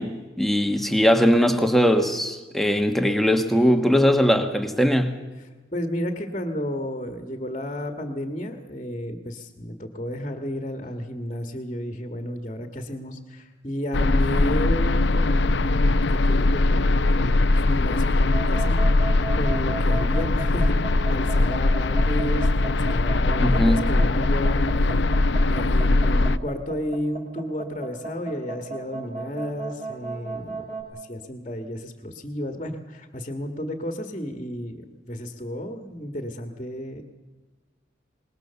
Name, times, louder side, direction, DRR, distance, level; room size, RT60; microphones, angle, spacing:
voice 1, 0.0-5.1 23.4-23.9, equal, ahead, 1.3 m, -20 dB
voice 2, 5.7-37.0, equal, 30° left, 1.6 m, -32 dB
sound 1, 13.9-26.4, left 2 dB, 70° left, 0.7 m, -21 dB
sound 2, 18.2-30.8, right 3 dB, 40° right, 5.4 m, -35 dB
25.5 x 21.0 x 7.0 m
head